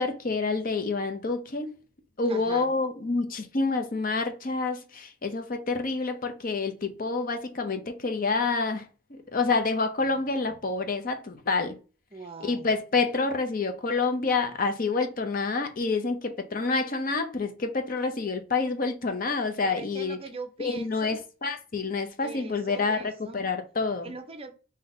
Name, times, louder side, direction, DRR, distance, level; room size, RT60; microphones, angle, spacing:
voice 1, 0.0-1.7 2.2-11.8 12.4-20.2 20.6-24.1, left 3 dB, 40° left, 0.6 m, -28 dB
voice 2, 2.3-2.7 12.1-12.7 19.6-21.2 22.2-23.5 24.0-24.5, right 3 dB, 30° right, 0.5 m, -41 dB
3.7 x 2.7 x 3.7 m
head